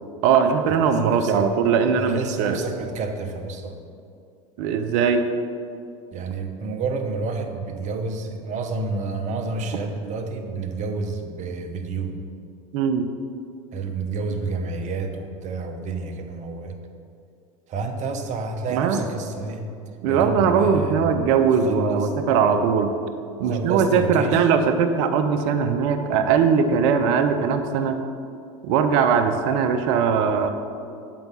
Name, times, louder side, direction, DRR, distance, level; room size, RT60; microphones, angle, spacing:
voice 1, 0.2-2.6 4.6-5.3 12.7-13.1 18.7-19.0 20.0-22.9 23.4-28.0 28.6-30.5, right 6 dB, 60° right, 7 dB, 0.7 m, -20 dB
voice 2, 1.0-1.5 1.9-3.7 6.1-12.2 13.7-16.8 17.7-19.6 20.1-21.3 21.6-22.1 23.4-24.5, right 3 dB, 40° right, 5 dB, 0.9 m, -29 dB
7.5 x 4.6 x 5.7 m, 2.4 s
hypercardioid pair, 90°, 18 cm